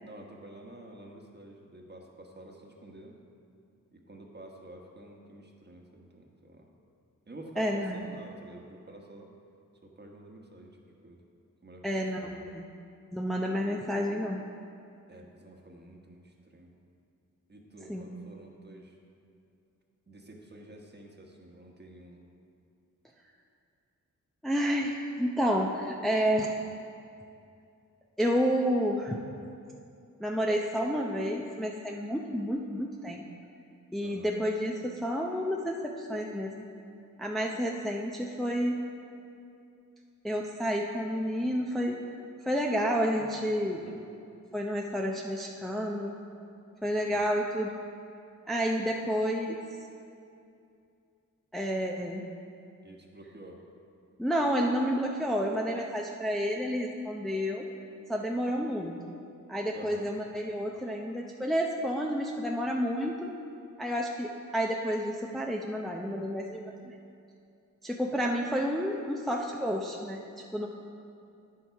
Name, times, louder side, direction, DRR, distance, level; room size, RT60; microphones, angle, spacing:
voice 1, 0.0-3.2 3.9-6.7 7.3-9.3 9.8-10.8 11.0-11.2 11.6-12.5 15.1-16.7 17.5-19.0 20.1-22.2 34.0-34.3 43.9-44.0 47.1-47.2 52.8-53.6 59.7-60.1, right 1 dB, 30° right, 1 dB, 1.3 m, -49 dB
voice 2, 7.6-8.0 11.8-12.7 13.1-14.4 17.9-18.1 24.4-26.5 28.2-29.2 30.2-33.3 33.9-36.7 37.2-38.8 40.2-42.0 42.5-43.8 44.5-46.1 46.8-47.7 48.5-49.6 51.5-52.3 54.2-57.7 58.1-59.2 59.5-63.3 63.8-66.9 67.8-70.7, equal, ahead, 0 dB, 0.6 m, -30 dB
9.3 x 6.9 x 4.6 m, 2.6 s
cardioid pair, 55°, 32 cm